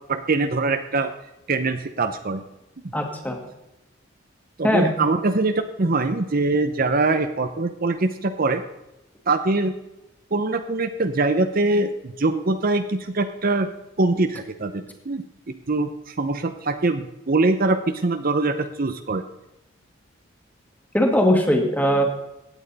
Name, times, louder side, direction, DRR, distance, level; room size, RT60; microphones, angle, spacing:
voice 1, 0.1-1.1 1.5-2.4 4.6-8.6 9.3-9.7 10.3-13.7 14.0-19.2, right 3 dB, 45° right, 8 dB, 0.7 m, -23 dB
voice 2, 2.9-3.5 4.6-4.9 20.9-22.0, equal, 10° left, 2 dB, 1.9 m, -20 dB
16.0 x 9.1 x 4.1 m, 0.93 s
head